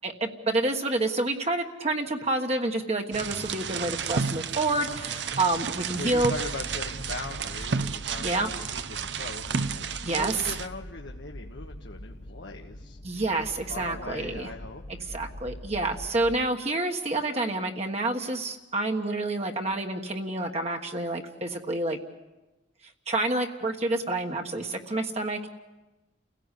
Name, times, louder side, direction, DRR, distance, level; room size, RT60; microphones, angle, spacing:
voice 1, 0.0-6.3 8.2-8.5 10.0-10.4 13.0-14.5 15.1-22.0 23.1-25.5, right 2 dB, 35° right, 3 dB, 1.4 m, -28 dB
sound 1, 3.1-10.7, right 5 dB, 75° right, 0.8 m, -32 dB
voice 2, 6.0-13.2 13.7-15.0, left 2 dB, 85° left, 2 dB, 1.4 m, -40 dB
sound 2, 6.0-16.5, left 1 dB, 40° left, 0.9 m, -43 dB
29.5 x 16.5 x 8.3 m, 1.1 s
head